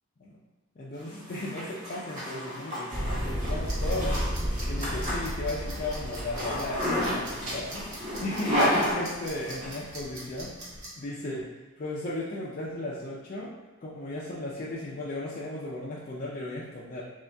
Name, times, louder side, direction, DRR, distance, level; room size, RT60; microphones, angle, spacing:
voice 1, 0.8-4.2 4.7-10.5 11.0-11.5 11.8-13.5 13.8-17.0, left 1 dB, 35° left, -8 dB, 0.4 m, -35 dB
Zipper (clothing), 1.0-9.7, equal, 35° right, 1.1 m, -31 dB
sound 1, 2.9-8.1, equal, 20° right, 0.8 m, -32 dB
sound 2, 3.5-10.9, right 1 dB, 65° right, 1.1 m, -44 dB
2.7 x 2.7 x 3.3 m, 1.3 s
head